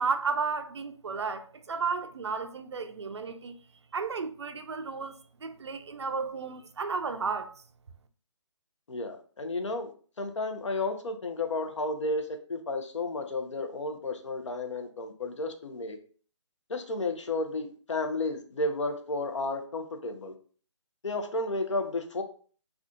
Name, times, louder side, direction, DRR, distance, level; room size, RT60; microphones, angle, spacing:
voice 1, 0.0-3.6 3.9-7.5, right 5 dB, 60° right, 0.4 m, -33 dB
voice 2, 8.9-9.9 10.2-16.0 16.7-20.3 21.0-22.2, left 2 dB, 70° left, 0.6 m, -32 dB
2.6 x 2.4 x 3.5 m
hypercardioid pair, 180°, 16 cm